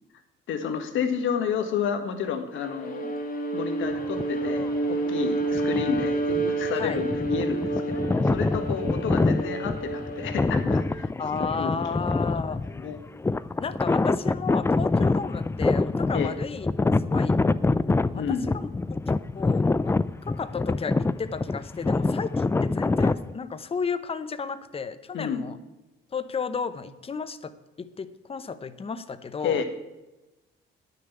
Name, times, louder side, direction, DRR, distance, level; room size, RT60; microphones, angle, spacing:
voice 1, 0.5-3.2 3.5-11.1 11.4-12.0 12.8-13.0 16.1-16.3 18.1-18.5 25.1-25.4 29.4-29.6, left 7 dB, 75° left, 7 dB, 1.6 m, -30 dB
Bowed string instrument, 2.5-10.9, right 2 dB, 45° left, 2.0 m, -29 dB
sound 1, 4.0-4.8 5.4-23.3, left 3 dB, 15° left, 0.4 m, -26 dB
voice 2, 11.2-12.6 13.6-17.4 18.1-18.7 19.1-19.9 20.2-25.6 26.1-27.5 27.8-29.6, left 5 dB, 30° left, 12 dB, 0.8 m, -33 dB
10.5 x 6.7 x 8.1 m, 1.1 s
cardioid pair, 90°, 20 cm